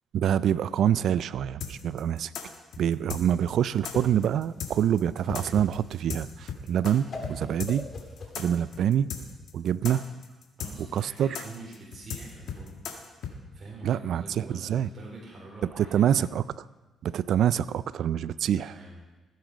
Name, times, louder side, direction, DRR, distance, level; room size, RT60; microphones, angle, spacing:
voice 1, 0.1-2.3 2.8-7.9 8.4-9.1 9.5-10.1 10.9-11.4 13.8-14.9 15.8-16.4 17.0-18.7, right 9 dB, 70° right, 17 dB, 0.4 m, -26 dB
sound 1, 1.6-6.9 7.2-7.3 7.6-13.3, left 8 dB, 75° left, 1.7 m, -37 dB
Whoosh swoosh swish, 3.4-8.9, left 3 dB, 45° left, 2.5 m, -41 dB
voice 2, 10.6-12.7 13.5-16.2 18.6-19.0, right 2 dB, 40° right, -4 dB, 4.3 m, -45 dB
16.0 x 9.4 x 5.1 m, 1.2 s
cardioid pair, 90°, 0 cm